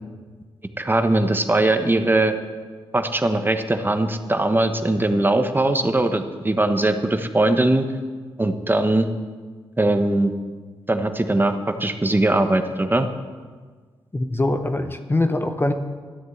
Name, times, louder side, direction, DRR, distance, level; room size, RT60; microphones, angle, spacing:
voice 1, 0.8-2.4 2.9-7.8 8.4-9.1 9.8-10.3 10.9-13.1, right 2 dB, 20° right, 7 dB, 1.2 m, -20 dB
voice 2, 14.1-15.7, left 2 dB, 25° left, 8 dB, 1.0 m, -22 dB
12.5 x 7.8 x 7.9 m, 1.5 s
cardioid pair, 50°, 10 cm